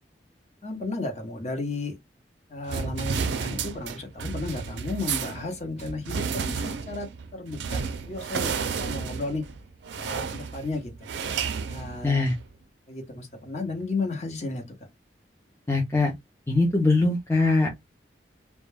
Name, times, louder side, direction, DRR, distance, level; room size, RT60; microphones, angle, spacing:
voice 1, 0.6-1.9 2.5-8.5 8.8-9.4 10.0-10.9 11.7-12.3 12.9-14.6, left 2 dB, 40° left, 0.8 m, -33 dB
sound 1, 2.7-12.5, right 5 dB, 85° right, 0.4 m, -32 dB
voice 2, 12.0-12.4 15.7-16.1 16.5-17.9, left 3 dB, 15° left, 0.4 m, -22 dB
2.2 x 2.1 x 3.2 m
head